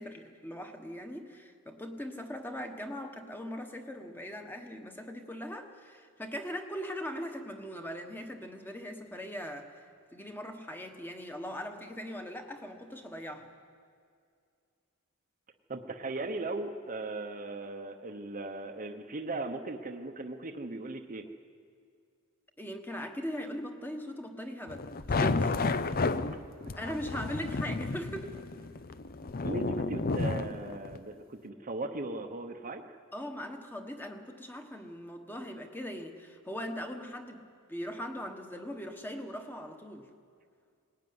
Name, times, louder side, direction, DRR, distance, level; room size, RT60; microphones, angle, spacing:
voice 1, 0.0-9.8 10.1-13.5 22.6-25.5 26.8-28.5 33.1-40.1, equal, 10° left, 5 dB, 1.4 m, -40 dB
voice 2, 15.7-21.3 29.4-32.8, right 2 dB, 35° right, 4 dB, 0.9 m, -38 dB
sound 1, 24.7-31.0, left 3 dB, 40° left, 0.6 m, -32 dB
19.5 x 17.5 x 9.6 m, 2.3 s
head